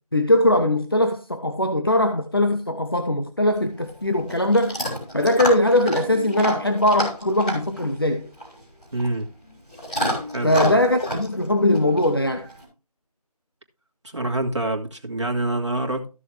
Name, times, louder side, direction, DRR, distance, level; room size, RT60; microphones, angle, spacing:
voice 1, 0.1-4.8 5.1-8.3 10.4-12.5, left 1 dB, 35° left, 0.6 m, -20 dB
Chewing mastication / Dog, 3.5-12.6, equal, 10° left, 3.2 m, -31 dB
voice 2, 8.9-9.3 10.3-10.8 14.0-16.1, right 2 dB, 50° right, 2.2 m, -26 dB
14.5 x 6.9 x 3.2 m
figure-of-eight pair, 170°, 20 cm